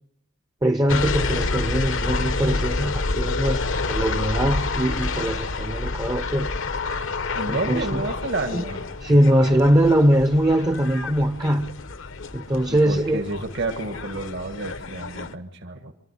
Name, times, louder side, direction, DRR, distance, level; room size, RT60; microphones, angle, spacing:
voice 1, 0.6-6.5 7.5-8.0 8.5-8.6 9.0-11.7 12.3-13.2, right 1 dB, 20° right, 0.7 m, -21 dB
sound 1, 0.9-15.3, left 3 dB, 65° left, 1.0 m, -28 dB
voice 2, 7.3-8.8 12.7-15.9, right 2 dB, 60° right, 1.6 m, -30 dB
25.0 x 13.0 x 9.9 m
head